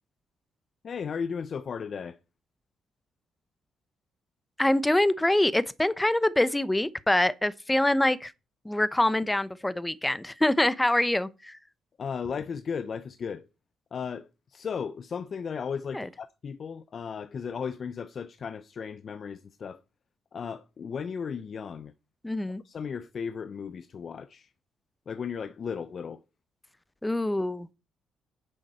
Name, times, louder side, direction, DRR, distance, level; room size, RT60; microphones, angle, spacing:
voice 1, 0.8-2.2 12.0-13.5 13.9-19.8 20.3-21.9 22.6-24.5 25.1-26.2, left 6 dB, 50° left, 0.7 m, -35 dB
voice 2, 4.6-8.3 8.6-11.6 15.9-16.0 22.2-22.6 27.0-27.7, left 1 dB, 10° left, 0.9 m, -25 dB
10.0 x 7.1 x 5.6 m
cardioid pair, 90°, 0 cm